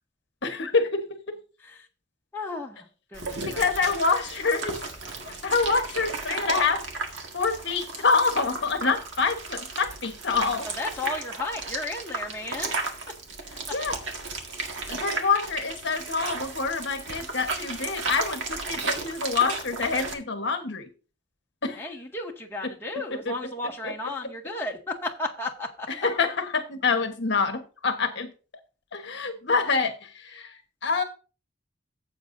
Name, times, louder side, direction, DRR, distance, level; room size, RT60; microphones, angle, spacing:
voice 1, 0.4-1.4 3.5-4.8 5.4-6.8 7.3-10.7 13.7-13.9 14.9-20.9 21.6-21.8 23.2-23.3 23.8-23.9 25.9-28.3 28.9-31.0, left 4 dB, 60° left, 6 dB, 1.2 m, -26 dB
voice 2, 2.3-3.9 10.6-12.7 21.7-25.9, left 2 dB, 10° left, -2 dB, 1.8 m, -34 dB
sound 1, 3.1-20.1, right 3 dB, 70° right, 1.8 m, -34 dB
14.5 x 8.0 x 2.6 m, 0.35 s
head